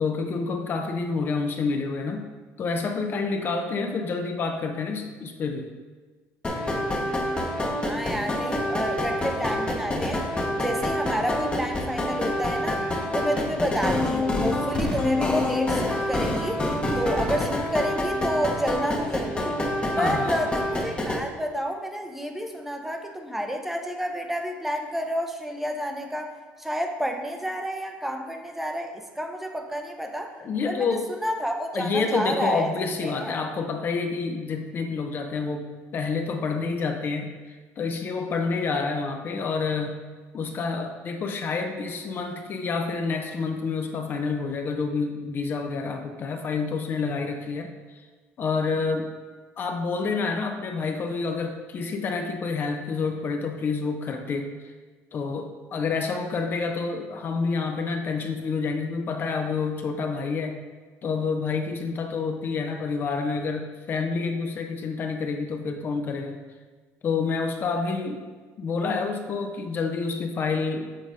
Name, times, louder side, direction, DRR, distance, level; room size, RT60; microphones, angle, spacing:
voice 1, 0.0-2.3 2.6-5.7 19.9-20.4 30.4-31.1 31.7-35.7 35.9-37.3 37.8-40.0 40.3-47.7 48.4-49.1 49.6-54.5 55.1-60.6 61.0-66.4 67.0-68.2 68.6-71.1, left 4 dB, 40° left, 5 dB, 0.7 m, -28 dB
sound 1, 6.4-21.2, left 1 dB, 20° left, 1.0 m, -27 dB
voice 2, 7.8-10.2 10.6-12.9 13.1-16.7 17.0-19.6 20.0-30.3 30.7-32.7 33.0-33.4, equal, 5° right, 3 dB, 0.8 m, -30 dB
7.5 x 3.9 x 5.0 m, 1.4 s
cardioid pair, 115°, 5 cm